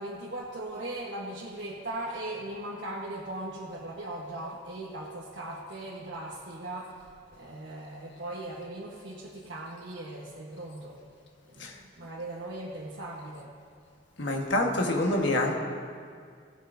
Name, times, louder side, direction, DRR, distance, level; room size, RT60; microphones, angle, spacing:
voice 1, 0.0-7.0 7.3-11.0 11.4-13.5, right 1 dB, 80° right, -5 dB, 1.2 m, -39 dB
voice 2, 14.2-15.6, left 1 dB, 75° left, 1 dB, 1.5 m, -26 dB
17.5 x 13.0 x 2.7 m, 2.1 s
head